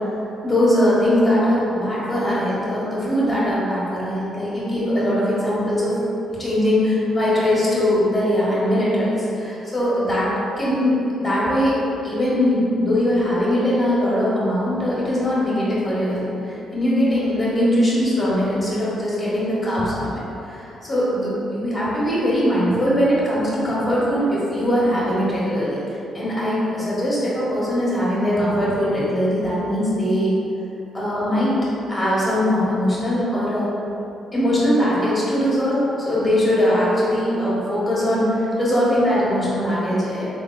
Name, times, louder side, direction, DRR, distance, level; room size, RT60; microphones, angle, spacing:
voice 1, 0.4-6.0 6.4-11.8 12.0-30.3 30.9-31.5 31.9-33.7 34.3-40.3, equal, 30° left, -8 dB, 1.4 m, -21 dB
4.2 x 3.4 x 2.3 m, 2.9 s
cardioid pair, 90°, 0 cm